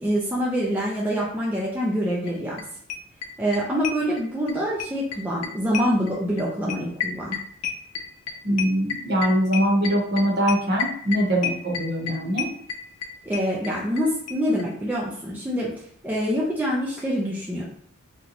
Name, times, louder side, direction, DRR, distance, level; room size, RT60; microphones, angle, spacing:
voice 1, 0.0-2.6 3.4-7.4 13.2-17.6, equal, 10° right, -5 dB, 0.4 m, -25 dB
sound 1, 2.3-2.4 2.6-2.7 2.9-4.5 4.8-14.0 14.3-14.4 14.6-14.7 14.9-15.0, left 7 dB, 90° left, 0.5 m, -30 dB
voice 2, 8.4-12.5, equal, 50° right, -2 dB, 0.9 m, -22 dB
2.8 x 2.2 x 3.9 m, 0.63 s
head